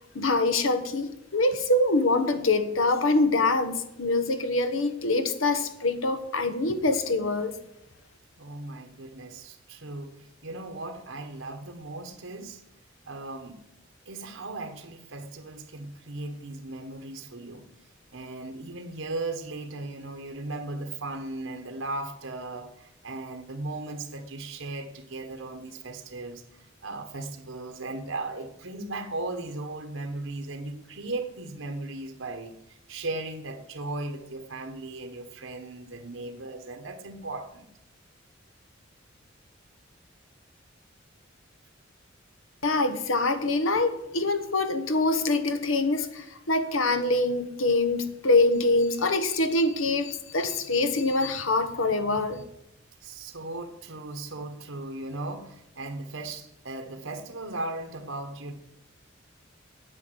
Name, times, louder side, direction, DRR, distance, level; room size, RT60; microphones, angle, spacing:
voice 1, 0.1-7.5 42.6-52.4, left 2 dB, 90° left, 10 dB, 1.3 m, -25 dB
voice 2, 8.4-12.6 13.1-13.6 14.0-17.7 18.1-37.7 53.0-58.5, right 2 dB, 80° right, 6 dB, 1.3 m, -37 dB
9.5 x 8.6 x 7.9 m, 0.82 s
head